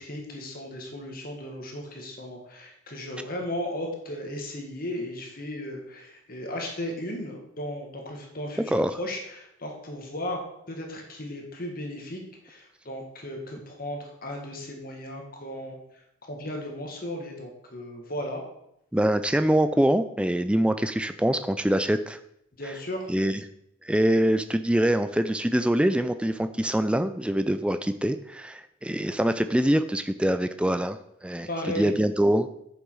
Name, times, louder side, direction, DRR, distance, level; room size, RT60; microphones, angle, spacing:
voice 1, 0.0-10.4 10.7-15.8 16.3-18.4 22.5-23.1 31.5-31.9, left 1 dB, 45° left, 1 dB, 1.9 m, -35 dB
voice 2, 18.9-22.2 23.1-23.4 23.9-31.0 31.2-32.5, right 1 dB, 5° right, 10 dB, 0.4 m, -24 dB
9.3 x 6.9 x 4.8 m, 0.79 s
head